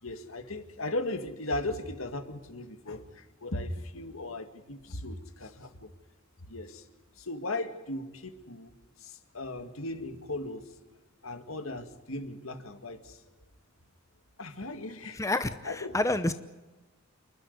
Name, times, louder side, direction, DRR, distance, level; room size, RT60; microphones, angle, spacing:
voice 1, 0.0-5.9 6.4-6.9 7.2-8.7 9.0-10.7 11.2-13.2 14.4-15.2 15.6-16.0, left 2 dB, 75° left, 8 dB, 2.1 m, -37 dB
voice 2, 15.1-16.3, left 2 dB, 15° left, 10 dB, 0.8 m, -29 dB
29.0 x 12.0 x 9.7 m, 1.2 s
head